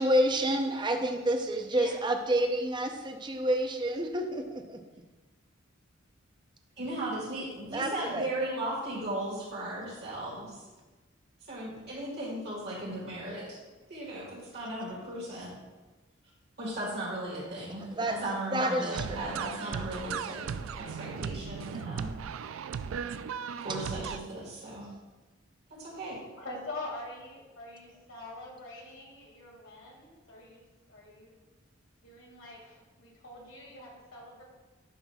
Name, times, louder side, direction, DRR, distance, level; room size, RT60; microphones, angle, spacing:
voice 1, 0.0-4.8 7.7-8.3 17.9-18.2 18.5-19.4, right 1 dB, 25° right, 5 dB, 0.6 m, -29 dB
voice 2, 6.8-10.6 11.5-13.6 13.9-15.5 16.6-20.5 20.7-22.1 23.6-24.9 25.8-26.2, right 1 dB, 55° right, -6 dB, 1.8 m, -36 dB
sound 1, 18.9-24.2, right 7 dB, 80° right, 0.3 m, -37 dB
voice 3, 26.4-31.4 32.0-34.4, left 2 dB, 75° left, -2 dB, 2.1 m, -44 dB
11.0 x 5.9 x 2.3 m, 1.2 s
head